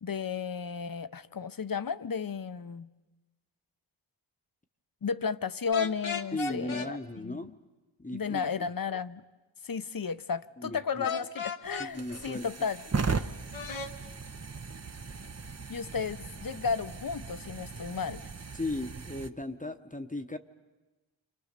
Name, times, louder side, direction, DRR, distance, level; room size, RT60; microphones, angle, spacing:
voice 1, 0.0-2.9 5.0-7.5 8.1-9.2 9.6-12.8 15.7-18.3, left 6 dB, 45° left, 0.8 m, -33 dB
sound 1, 5.7-6.9 11.0-11.9 13.5-13.9, left 5 dB, 85° left, 1.3 m, -35 dB
voice 2, 6.3-7.5 8.0-8.7 10.6-11.1 11.8-12.5 18.5-20.4, left 2 dB, 15° left, 1.0 m, -36 dB
sound 2, 11.6-19.3, right 4 dB, 35° right, 0.8 m, -37 dB
29.5 x 25.5 x 6.7 m
wide cardioid pair, 70°, 46 cm